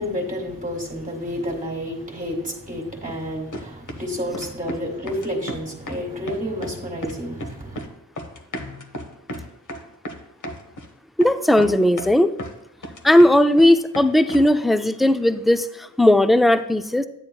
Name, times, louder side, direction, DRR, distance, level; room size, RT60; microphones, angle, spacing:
voice 1, 0.0-7.9, equal, 20° right, -1 dB, 1.6 m, -30 dB
sound 1, 3.1-3.2 3.5-4.1 4.3-4.8 5.1-6.0 6.3-6.8 7.0-7.9 8.2-10.9 11.2-11.3 11.6-12.5 12.8-13.7 13.9-14.5, equal, 55° left, 1.0 m, -34 dB
voice 2, 11.2-12.3 13.0-15.7 16.0-17.1, left 1 dB, ahead, 10 dB, 0.3 m, -16 dB
10.5 x 9.2 x 2.3 m, 0.85 s
wide cardioid pair, 90°, 35 cm